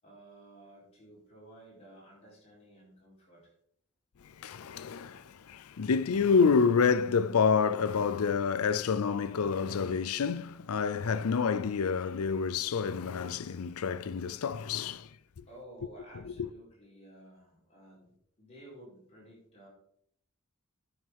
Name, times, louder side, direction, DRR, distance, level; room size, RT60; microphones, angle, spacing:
voice 1, 0.0-3.5 15.5-19.7, right 1 dB, 30° left, 4.2 m, -54 dB
voice 2, 4.4-15.1 15.4-15.5 16.4-16.5, left 5 dB, 90° left, 0.5 m, -28 dB
9.2 x 6.5 x 4.7 m
head